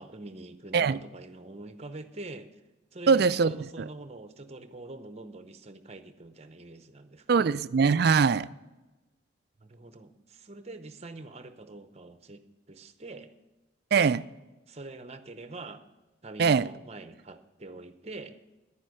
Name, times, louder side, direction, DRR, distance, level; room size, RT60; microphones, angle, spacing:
voice 1, 0.0-2.6 2.9-7.5 9.6-13.3 14.0-14.2 14.7-15.8 16.2-18.4, right 2 dB, 30° right, 0.8 m, -44 dB
voice 2, 3.1-3.6 7.3-8.5 13.9-14.2 16.4-16.7, right 5 dB, 50° right, 0.3 m, -22 dB
10.0 x 9.9 x 6.4 m
head